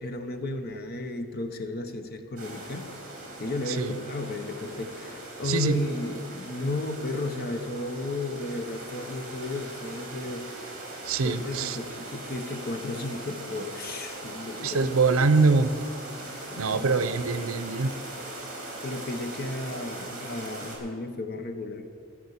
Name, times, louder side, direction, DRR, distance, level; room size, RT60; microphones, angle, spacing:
voice 1, 0.0-2.9 3.4-10.5 11.2-14.9 16.5-16.9 18.8-21.8, left 2 dB, 50° left, 7 dB, 1.0 m, -34 dB
sound 1, 2.4-20.8, right 2 dB, 40° right, 3.3 m, -40 dB
voice 2, 5.4-5.8 11.0-11.8 14.6-15.7 16.6-17.9, right 4 dB, 80° right, 13 dB, 0.7 m, -24 dB
15.0 x 6.3 x 8.2 m, 2.3 s
head